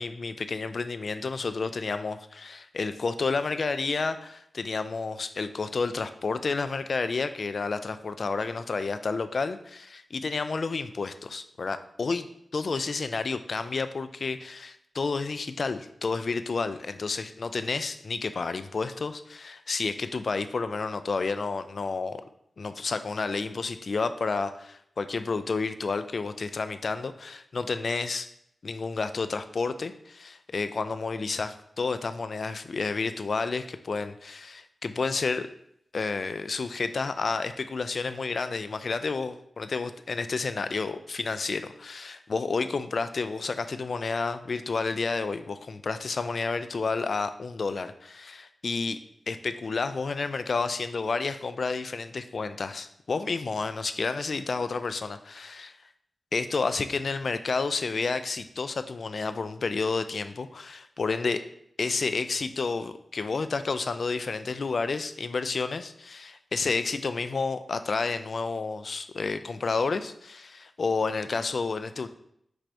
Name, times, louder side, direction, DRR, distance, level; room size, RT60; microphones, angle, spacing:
voice 1, 0.0-12.3 12.5-22.2 22.6-28.3 28.6-35.5 35.9-49.0 49.3-55.8 56.3-61.4 61.8-72.1, left 4 dB, 65° left, 11 dB, 0.3 m, -30 dB
4.6 x 4.3 x 2.6 m, 0.72 s
cardioid pair, 60°, 0 cm